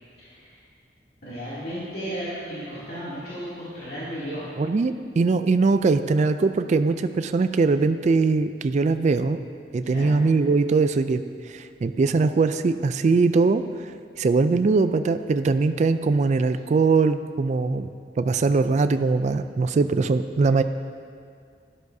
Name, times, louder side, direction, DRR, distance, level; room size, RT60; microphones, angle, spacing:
voice 1, 0.2-0.6 1.2-4.5 9.8-10.1, equal, 65° left, -12 dB, 2.6 m, -34 dB
voice 2, 4.6-9.4 9.7-11.2 11.5-13.6 14.2-17.9 18.2-20.6, right 4 dB, 40° right, 10 dB, 0.3 m, -21 dB
12.0 x 11.0 x 2.7 m, 2.2 s
head